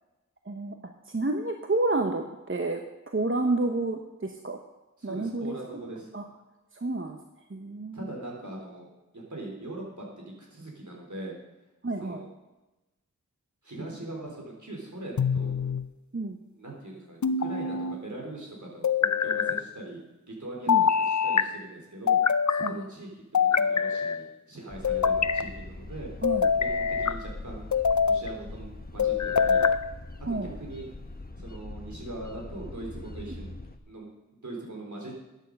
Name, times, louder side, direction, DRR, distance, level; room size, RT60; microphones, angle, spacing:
voice 1, 1.1-2.8 3.1-4.6 5.0-5.5 6.1-6.2 6.8-7.2 7.5-8.1 11.8-12.2 16.1-16.4 20.7-20.9 22.6-22.8 26.2-26.5 30.3-30.6, right 2 dB, 40° right, 4 dB, 0.9 m, -29 dB
voice 2, 5.0-6.1 7.9-8.9 9.1-11.3 12.0-12.3 13.6-15.5 16.6-20.0 20.3-22.2 22.5-26.1 26.6-27.6 28.0-29.7 30.3-30.9 31.4-33.5 33.9-34.1 34.4-35.2, right 2 dB, 65° right, -1 dB, 3.9 m, -41 dB
sound 1, 15.2-15.9 17.2-18.0 18.8-19.6 20.7-21.5 22.1-22.7 23.3-24.2 24.8-25.5 26.2-27.2 27.7-28.3 29.0-29.8, left 6 dB, 65° left, 0.6 m, -24 dB
sound 2, 24.7-33.8, left 2 dB, 30° left, 1.0 m, -42 dB
13.5 x 9.3 x 5.3 m, 1.0 s
wide cardioid pair, 50°, 31 cm